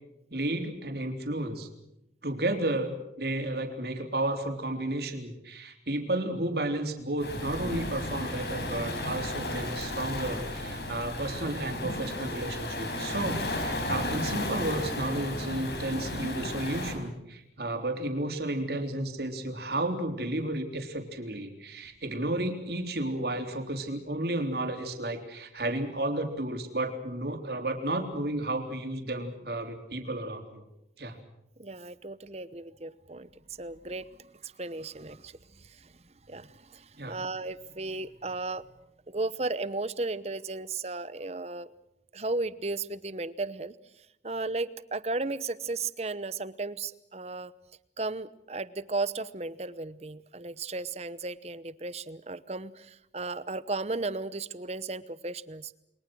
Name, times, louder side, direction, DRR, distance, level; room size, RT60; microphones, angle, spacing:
voice 1, 0.3-1.7 2.2-30.6 31.0-31.2 37.0-37.2, right 1 dB, 65° right, 5 dB, 3.7 m, -32 dB
Waves surf, 7.2-17.0, left 1 dB, 70° left, 5.5 m, -34 dB
voice 2, 31.6-33.3 33.6-35.9 36.3-38.6 39.1-41.7 42.1-43.7 44.2-47.5 48.0-55.7, right 3 dB, 35° right, 15 dB, 1.0 m, -35 dB
29.5 x 22.5 x 6.3 m, 0.83 s
head